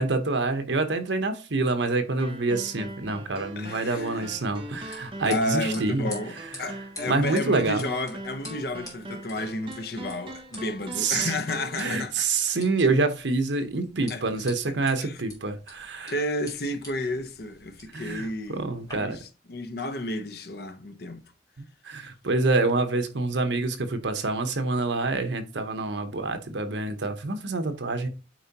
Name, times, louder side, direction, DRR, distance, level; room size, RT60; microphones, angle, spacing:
voice 1, 0.0-6.1 7.1-7.8 11.0-11.3 11.8-16.1 17.9-19.2 21.6-28.1, right 3 dB, 75° right, 1.0 m, -27 dB
sound 1, 2.2-11.8, right 1 dB, 30° right, 0.7 m, -41 dB
voice 2, 3.6-4.3 5.3-12.6 14.1-14.5 15.0-15.2 16.1-21.2, left 1 dB, 55° left, 0.8 m, -32 dB
sound 2, 4.1-18.9, left 1 dB, 20° left, 2.7 m, -48 dB
9.0 x 4.5 x 2.9 m
head